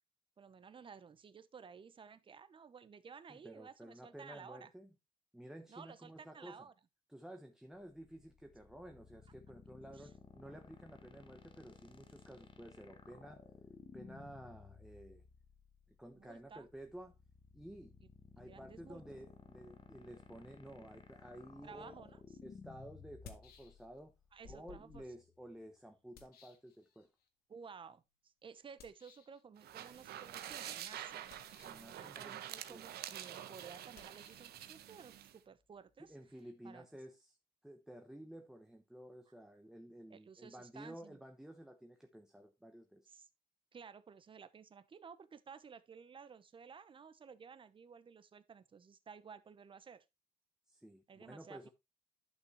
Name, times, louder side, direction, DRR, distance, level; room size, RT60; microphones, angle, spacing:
voice 1, 0.4-4.7 5.7-6.7 9.9-10.1 16.1-16.7 18.0-18.1 18.4-19.0 21.6-22.2 24.3-25.0 27.5-31.3 31.9-36.2 36.6-36.9 40.1-41.2 43.1-43.3 43.7-50.0 51.1-51.7, right 6 dB, 30° right, 0.9 m, -55 dB
voice 2, 3.3-4.9 5.3-6.6 7.1-13.4 13.9-15.2 16.0-17.2 17.5-17.9 18.4-22.0 22.4-24.1 24.4-27.1 31.6-32.3 32.7-32.9 36.0-37.4 37.6-43.1 50.7-51.7, right 1 dB, 5° right, 0.9 m, -53 dB
sound 1, 7.7-24.9, left 5 dB, 30° left, 1.2 m, -57 dB
sound 2, 22.1-22.2 23.0-24.1 24.4-27.3 28.8-29.4 31.2-31.9 33.9-36.5, left 7 dB, 70° left, 1.6 m, -61 dB
sound 3, 29.6-35.4, right 11 dB, 75° right, 1.0 m, -47 dB
11.0 x 6.1 x 3.1 m
cardioid pair, 115°, 17 cm